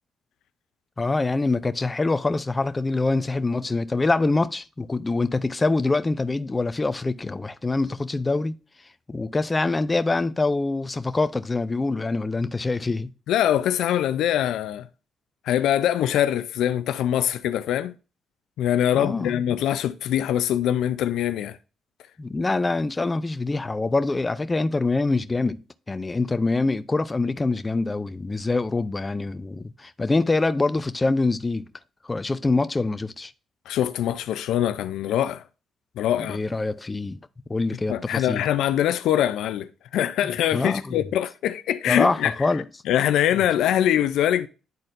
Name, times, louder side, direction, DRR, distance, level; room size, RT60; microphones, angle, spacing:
voice 1, 1.0-8.5 9.1-13.1 18.9-19.3 22.2-25.6 25.9-31.7 32.0-33.3 36.2-37.2 37.5-38.4 40.2-41.0 41.9-42.6, left 3 dB, 20° left, 0.5 m, -25 dB
voice 2, 13.3-14.9 15.5-17.9 18.6-21.6 33.7-35.4 36.0-36.4 37.9-42.3 42.9-44.5, left 11 dB, 80° left, 0.4 m, -23 dB
10.5 x 4.2 x 2.5 m
cardioid pair, 90°, 0 cm